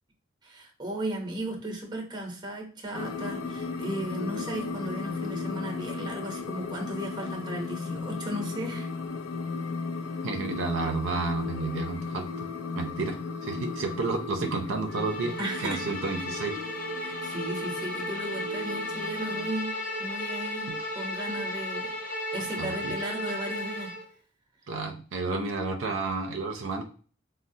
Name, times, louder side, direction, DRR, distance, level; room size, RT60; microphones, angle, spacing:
voice 1, 0.4-8.9 15.4-15.8 17.0-19.7 20.0-21.9 22.3-23.9, right 1 dB, 20° right, 2 dB, 0.7 m, -35 dB
sound 1, 2.9-19.5, left 4 dB, 85° left, 0.4 m, -36 dB
voice 2, 10.2-12.5 12.7-16.6 22.6-23.0 24.7-26.8, right 3 dB, 75° right, 4 dB, 0.5 m, -31 dB
Bowed string instrument, 14.9-24.0, equal, 45° left, 0.7 m, -34 dB
4.1 x 2.0 x 2.6 m, 0.40 s
head